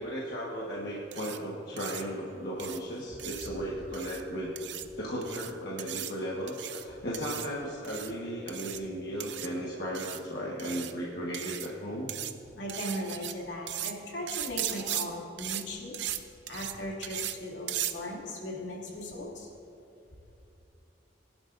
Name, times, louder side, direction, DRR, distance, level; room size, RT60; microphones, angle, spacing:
voice 1, 0.0-4.5 5.0-12.1, equal, 55° left, -5 dB, 1.4 m, -36 dB
sound 1, 1.1-1.4 1.8-2.0 2.6-2.8 3.2-3.5 3.9-4.2 4.6-4.8 5.2-5.5 5.8-6.1 6.5-6.8 7.1-7.5 7.8-8.1 8.5-8.8 9.2-9.5 9.9-10.2 10.6-10.9 11.3-11.7 12.1-12.3 12.7-13.3 13.7-13.9 14.3-15.0 15.4-15.6 15.9-16.2 16.5-16.7 17.0-17.3 17.7-17.9, right 12 dB, 70° right, 0.6 m, -36 dB
voice 2, 12.6-16.0 16.5-19.5, left 1 dB, 75° left, -3 dB, 2.6 m, -38 dB
21.0 x 11.5 x 2.6 m, 2.8 s
head